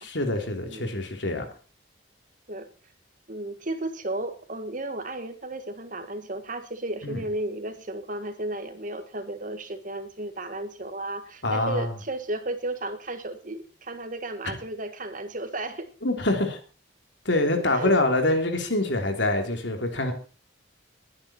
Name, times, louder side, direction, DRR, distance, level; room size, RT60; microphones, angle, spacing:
voice 1, 0.0-1.4 7.0-7.2 11.4-11.9 14.4-14.6 16.0-16.6 17.2-20.1, left 2 dB, 70° left, 3.4 m, -25 dB
voice 2, 3.3-15.9 17.7-17.9, right 2 dB, 45° right, 1.7 m, -34 dB
21.0 x 10.0 x 4.4 m
head